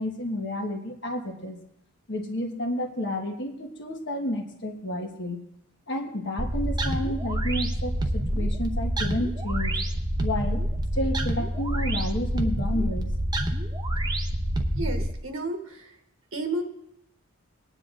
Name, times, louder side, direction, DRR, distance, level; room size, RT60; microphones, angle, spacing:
voice 1, 0.0-1.6 2.1-5.4 5.9-9.8 10.2-10.6 10.9-13.4, left 1 dB, 55° left, 3 dB, 1.4 m, -31 dB
sound 1, 6.4-15.1, right 1 dB, 20° right, 0.7 m, -27 dB
voice 2, 14.8-15.9 16.3-16.6, right 2 dB, 60° right, 3 dB, 1.2 m, -32 dB
21.0 x 9.8 x 2.5 m, 0.77 s
head